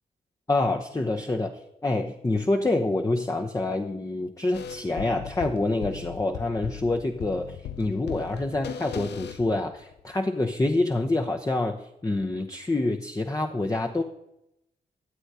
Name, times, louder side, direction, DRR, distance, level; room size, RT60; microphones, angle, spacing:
voice 1, 0.5-14.0, left 2 dB, 20° left, 4 dB, 0.9 m, -27 dB
sound 1, 4.5-10.0, left 9 dB, 70° left, 0.6 m, -38 dB
13.0 x 7.7 x 4.9 m, 0.85 s
supercardioid pair, 45°, 18 cm